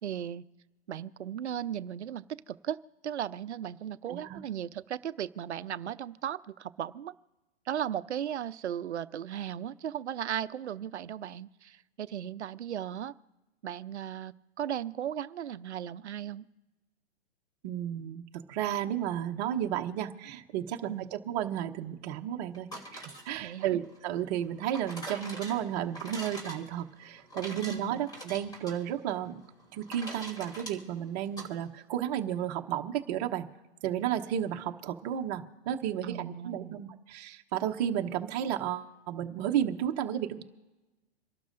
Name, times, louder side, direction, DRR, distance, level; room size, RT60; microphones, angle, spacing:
voice 1, 0.0-0.4 0.9-7.1 7.7-13.1 13.6-16.4 20.9-21.1 23.4-23.8 27.7-28.0 36.0-36.8, right 10 dB, 80° right, 14 dB, 0.7 m, -36 dB
voice 2, 4.1-4.4 17.6-18.2 18.5-29.4 29.7-33.4 33.8-40.4, right 10 dB, 40° right, 4 dB, 1.0 m, -33 dB
sound 1, 22.5-31.5, right 1 dB, 10° left, 3.1 m, -45 dB
27.5 x 12.0 x 2.6 m, 1.1 s
hypercardioid pair, 125°, 34 cm